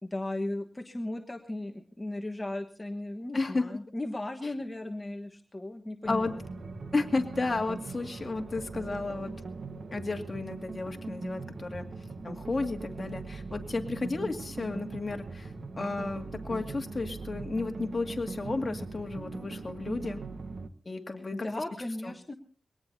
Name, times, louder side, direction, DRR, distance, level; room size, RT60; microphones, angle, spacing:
voice 1, 0.0-6.4 21.2-22.3, left 1 dB, 20° left, 4 dB, 1.3 m, -36 dB
voice 2, 3.3-3.7 6.1-6.4 6.9-9.3 9.9-11.8 12.2-20.2 20.9-21.5 22.0-22.1, left 3 dB, 35° left, 3 dB, 2.2 m, -33 dB
sound 1, 6.0-20.7, right 3 dB, 60° right, 1.2 m, -40 dB
22.5 x 18.5 x 2.8 m, 0.41 s
wide cardioid pair, 100°, 0 cm